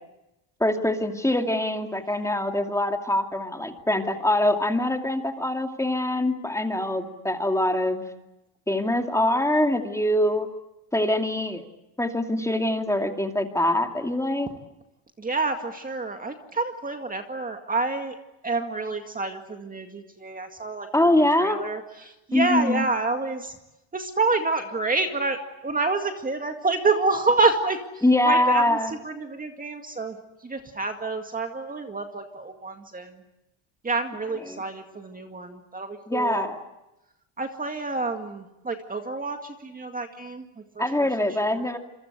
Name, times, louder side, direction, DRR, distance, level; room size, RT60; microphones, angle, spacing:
voice 1, 0.6-8.0 8.7-10.5 10.9-11.6 12.0-14.5 20.9-21.6 22.3-22.9 28.0-28.9 34.5-34.6 36.1-36.6 40.8-41.8, left 1 dB, 5° left, 4 dB, 2.5 m, -24 dB
voice 2, 15.2-18.2 18.4-20.9 21.4-23.5 23.9-33.2 33.8-36.5 37.4-41.1 41.4-41.7, right 3 dB, 20° right, 5 dB, 2.1 m, -28 dB
27.5 x 24.0 x 8.1 m, 0.93 s
cardioid pair, 115°, 45 cm